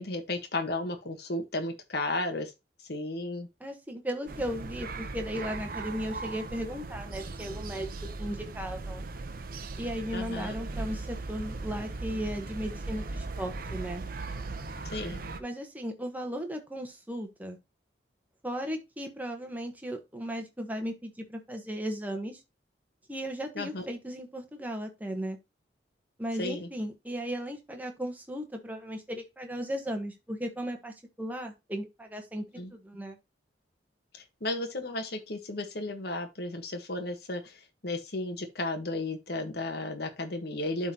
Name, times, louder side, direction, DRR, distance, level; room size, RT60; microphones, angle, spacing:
voice 1, 0.0-2.5 2.9-3.5 10.1-10.6 14.8-15.2 23.5-23.8 26.4-26.7 32.6-32.7 34.1-40.9, left 2 dB, 60° left, 1.4 m, -34 dB
voice 2, 3.6-7.9 8.2-9.0 9.8-14.0 15.4-17.6 18.4-22.4 23.1-25.4 26.2-32.4 32.7-33.2, equal, 10° right, 1.3 m, -36 dB
sound 1, 4.3-15.4, right 3 dB, 50° right, 0.8 m, -38 dB
12.0 x 4.0 x 2.9 m
head